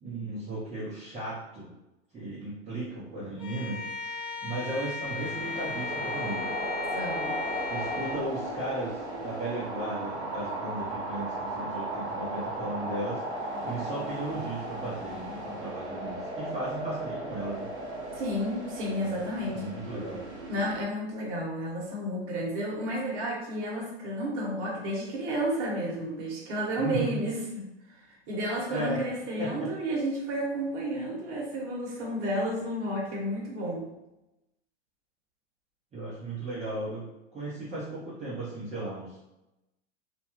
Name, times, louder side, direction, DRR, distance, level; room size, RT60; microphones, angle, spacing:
voice 1, 0.0-1.7 2.1-6.5 7.7-17.7 19.0-20.2 26.8-27.2 28.7-29.0 29.4-29.7 35.9-37.0 37.3-39.2, right 2 dB, 20° right, -10 dB, 0.8 m, -36 dB
Bowed string instrument, 3.4-8.3, left 4 dB, 15° left, 1.2 m, -36 dB
sound 1, 5.0-20.8, right 1 dB, 65° right, 0.9 m, -36 dB
voice 2, 6.9-7.3 18.1-19.7 20.5-27.4 27.9-33.9, equal, 40° right, -4 dB, 1.1 m, -31 dB
2.3 x 2.2 x 3.0 m, 0.93 s
hypercardioid pair, 115°, 35 cm